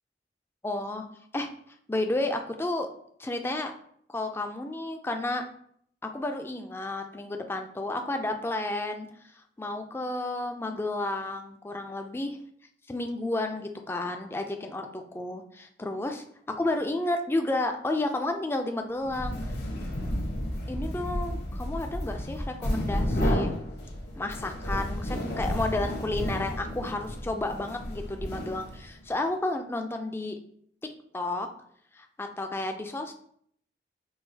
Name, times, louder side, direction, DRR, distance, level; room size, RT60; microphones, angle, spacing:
voice 1, 0.6-1.1 1.3-1.5 1.9-2.9 3.2-3.7 4.1-5.4 6.0-9.1 9.6-12.3 12.9-19.4 20.7-23.5 24.2-30.4 31.1-31.5 31.9-33.2, left 2 dB, 15° left, 5 dB, 0.3 m, -31 dB
sound 1, 19.0-29.0, equal, 65° left, 0.9 m, -31 dB
5.6 x 2.4 x 2.7 m, 0.65 s
head